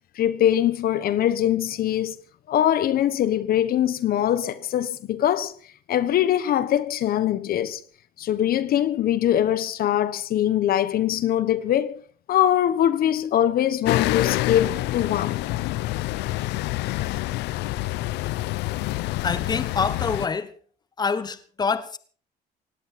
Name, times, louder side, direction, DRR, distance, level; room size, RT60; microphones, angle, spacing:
voice 1, 0.1-2.2 2.5-5.5 5.9-7.8 8.2-12.0 12.3-15.4, left 11 dB, 60° left, 1.2 m, -22 dB
sound 1, 13.9-20.3, left 18 dB, 85° left, 0.7 m, -27 dB
voice 2, 19.2-20.5 21.0-22.0, left 5 dB, 25° left, 1.2 m, -26 dB
18.0 x 17.0 x 4.3 m
cardioid pair, 110°, 17 cm